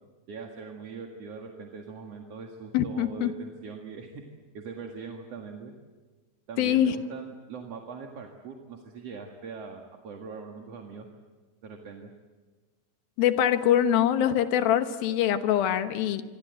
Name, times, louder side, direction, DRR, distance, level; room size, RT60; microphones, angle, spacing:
voice 1, 0.3-4.1 4.5-5.7 6.5-11.1 11.6-12.1, right 5 dB, 50° right, 2 dB, 2.5 m, -41 dB
voice 2, 2.7-3.3 6.6-7.0 13.2-16.2, left 10 dB, 75° left, 9 dB, 2.9 m, -24 dB
26.5 x 25.0 x 8.0 m, 1.3 s
omnidirectional pair, 4.5 m